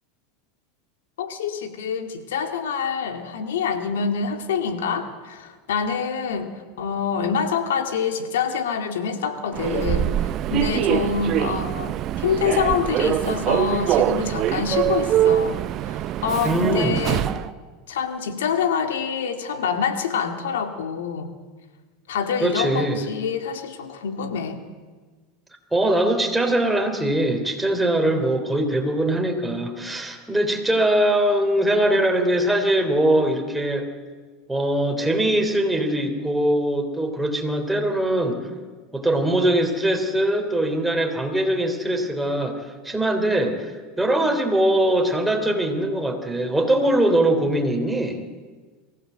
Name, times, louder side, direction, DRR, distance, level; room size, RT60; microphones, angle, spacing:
voice 1, 1.2-10.1 10.5-17.2 17.9-21.3 22.1-24.6, left 6 dB, 85° left, 7 dB, 2.1 m, -26 dB
Human voice / Subway metro underground, 9.5-17.5, right 12 dB, 45° right, 0.6 m, -23 dB
voice 2, 16.4-17.0 17.2-17.4 22.4-23.0 25.7-33.9 34.5-38.4 38.9-42.6 42.8-43.7 44.0-48.2, right 1 dB, 5° right, 4 dB, 3.4 m, -22 dB
23.0 x 16.0 x 8.0 m, 1.4 s
supercardioid pair, 110°, 0 cm